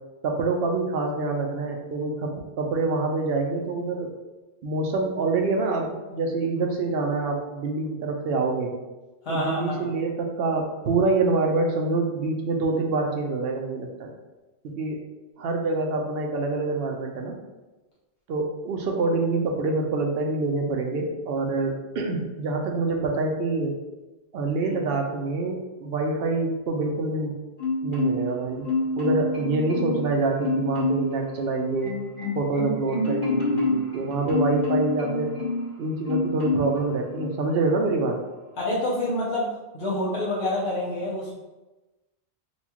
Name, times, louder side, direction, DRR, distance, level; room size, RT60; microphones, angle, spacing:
voice 1, 0.2-4.1 4.6-8.8 9.3-14.1 14.6-15.0 15.4-17.4 18.3-23.7 24.3-27.4 27.8-28.7 29.0-31.9 32.3-35.3 35.8-38.2, right 3 dB, 70° right, 2 dB, 0.8 m, -26 dB
voice 2, 9.2-9.8 38.6-39.5 39.7-41.3, left 1 dB, 75° left, -5 dB, 1.0 m, -27 dB
Marimba xylophone, 27.6-28.4 28.6-30.1 30.4-31.1 31.5-35.7 36.1-36.8 37.2-37.4, left 2 dB, 55° left, 1.5 m, -27 dB
4.2 x 2.3 x 2.9 m, 1.1 s
omnidirectional pair, 1.0 m